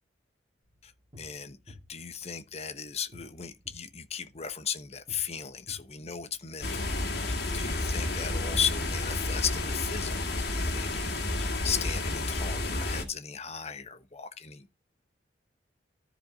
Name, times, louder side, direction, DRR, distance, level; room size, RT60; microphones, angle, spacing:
sound 1, 0.6-10.6, left 2 dB, 30° right, 2.5 m, -55 dB
voice 1, 1.2-6.9 7.1-14.7, left 7 dB, 35° left, 1.1 m, -36 dB
sound 2, 6.6-13.0, left 2 dB, 60° left, 2.2 m, -31 dB
13.5 x 5.1 x 4.0 m
head